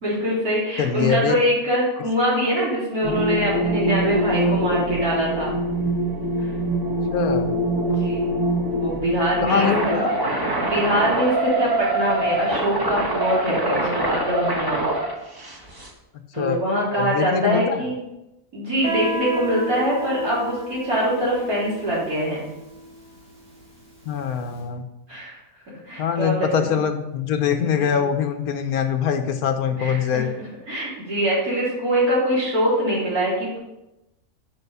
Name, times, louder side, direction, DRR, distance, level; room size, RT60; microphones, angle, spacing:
voice 1, 0.0-5.5 6.4-6.5 7.8-8.4 8.7-10.2 10.6-14.8 16.3-18.0 18.5-22.4 25.1-25.4 25.9-26.8 27.6-27.9 29.7-30.2 30.7-33.6, equal, 80° right, -7 dB, 4.2 m, -23 dB
voice 2, 0.8-1.4 3.0-3.1 7.1-7.5 9.4-10.1 16.4-16.6 17.0-17.9 24.0-24.8 26.0-30.3, left 7 dB, 80° left, 8 dB, 1.3 m, -23 dB
sound 1, 3.0-15.9, right 1 dB, 20° right, 0.9 m, -24 dB
Guitar, 18.8-24.3, right 1 dB, 45° right, 3.6 m, -33 dB
9.7 x 4.9 x 5.5 m, 0.94 s
omnidirectional pair, 1.6 m